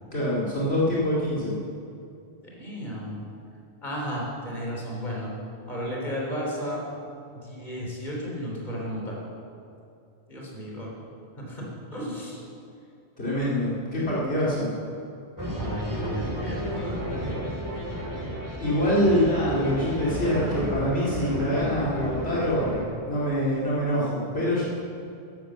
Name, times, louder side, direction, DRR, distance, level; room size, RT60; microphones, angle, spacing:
voice 1, 0.1-1.6 13.2-14.7 18.6-22.8 23.0-24.7, equal, 70° left, -7 dB, 2.8 m, -25 dB
voice 2, 2.4-3.3 3.8-5.3 5.7-6.8 7.3-9.2 10.3-10.9 11.4-11.6 11.9-12.4 15.5-17.1, equal, 45° left, -3 dB, 3.4 m, -33 dB
sound 1, 15.4-22.8, equal, 15° right, 2.7 m, -32 dB
11.5 x 11.0 x 7.4 m, 2.6 s
omnidirectional pair, 1.1 m